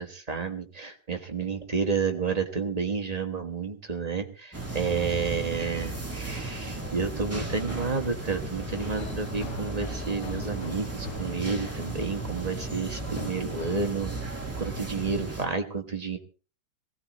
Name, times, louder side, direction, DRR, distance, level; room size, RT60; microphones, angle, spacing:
voice 1, 0.0-16.2, right 5 dB, 25° right, 4 dB, 1.0 m, -31 dB
sound 1, 4.5-15.4, right 2 dB, 5° right, 2.3 m, -35 dB
sound 2, 8.7-13.9, left 9 dB, 85° left, 2.1 m, -44 dB
20.5 x 16.5 x 3.0 m, 0.35 s
omnidirectional pair, 2.4 m